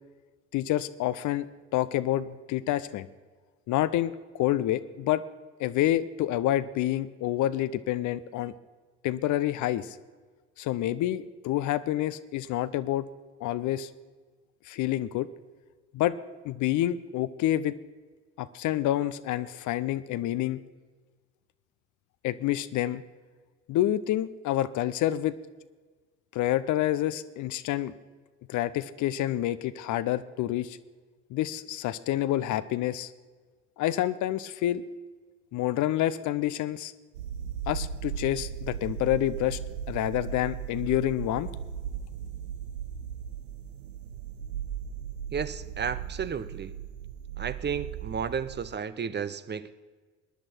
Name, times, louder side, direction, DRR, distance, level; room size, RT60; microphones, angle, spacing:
voice 1, 0.5-1.5 1.7-3.1 3.7-5.2 5.6-8.5 9.0-10.0 10.6-13.1 13.4-13.9 14.7-15.3 15.9-16.1 16.4-17.8 18.4-20.6 22.2-23.0 23.7-25.4 26.3-27.9 28.5-30.8 31.3-33.1 33.8-34.8 35.5-36.9 37.7-39.6 39.9-41.5, left 13 dB, 55° left, 15 dB, 0.7 m, -28 dB
sound 1, 37.1-48.8, right 8 dB, 75° right, 0.6 m, -37 dB
voice 2, 45.3-46.7 47.4-49.7, right 6 dB, 30° right, 14 dB, 0.7 m, -33 dB
19.0 x 10.5 x 4.5 m, 1.4 s
figure-of-eight pair, 55°, 37 cm